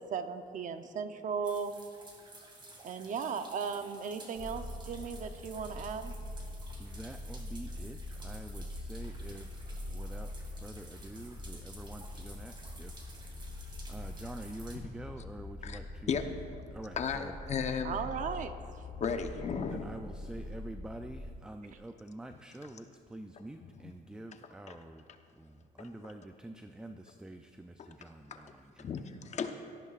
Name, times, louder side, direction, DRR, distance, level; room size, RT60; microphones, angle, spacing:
voice 1, 0.0-1.8 2.8-6.1 17.8-18.5, right 6 dB, 50° right, 9 dB, 0.8 m, -36 dB
sound 1, 1.4-14.8, right 2 dB, 25° right, 2.3 m, -54 dB
sound 2, 4.4-21.3, left 1 dB, 20° left, 1.2 m, -44 dB
voice 2, 6.8-13.1 13.5-13.6 13.9-16.2 16.7-17.4 19.6-25.1 25.4-29.0, right 1 dB, 5° right, 6 dB, 0.4 m, -47 dB
voice 3, 17.0-18.0 19.0-19.8 24.7-24.8 27.8-27.9 28.3-28.4 28.8-29.5, left 6 dB, 40° left, 6 dB, 0.9 m, -34 dB
17.5 x 13.5 x 2.5 m, 2.5 s
cardioid pair, 110°, 17 cm